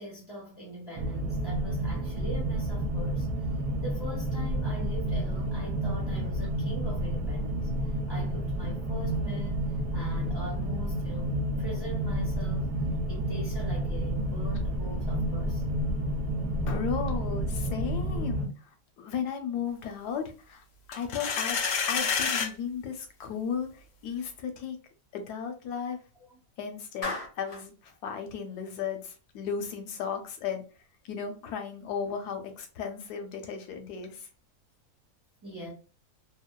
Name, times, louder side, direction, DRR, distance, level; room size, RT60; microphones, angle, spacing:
voice 1, 0.0-3.5 3.8-7.7 8.1-9.6 9.9-12.8 13.1-15.6 25.8-25.9 26.3-26.4 29.4-29.5 35.4-35.7, equal, 20° right, 0.7 m, -42 dB
sound 1, 1.0-18.5, right 1 dB, 90° right, 1.2 m, -30 dB
voice 2, 16.5-18.7 19.0-20.6 20.9-21.6 21.9-24.8 25.1-26.0 26.6-30.6 31.0-34.3, left 7 dB, 90° left, 1.2 m, -35 dB
sound 2, 20.9-22.5, left 6 dB, 65° left, 0.8 m, -28 dB
Clapping, 27.0-27.7, left 2 dB, 40° left, 0.5 m, -35 dB
2.9 x 2.0 x 2.2 m
omnidirectional pair, 1.7 m